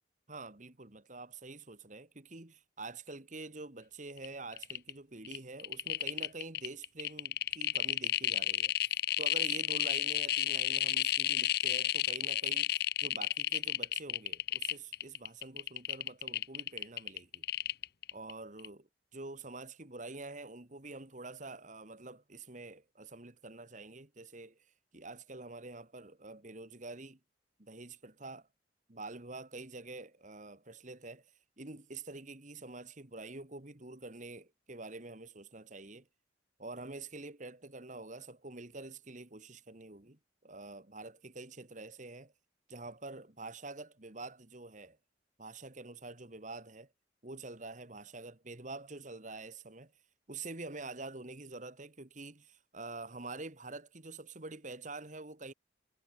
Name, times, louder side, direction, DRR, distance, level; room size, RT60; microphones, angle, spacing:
voice 1, 0.3-17.4 18.1-24.7 24.9-27.2 27.6-28.5 28.9-36.1 36.6-42.3 42.7-45.0 45.4-46.9 47.2-49.9 50.3-55.5, right 3 dB, 40° right, 1.8 m, -47 dB
sound 1, 4.2-4.3 4.5-4.9 5.2-18.3 18.6-18.7, left 12 dB, 55° left, 1.4 m, -32 dB
head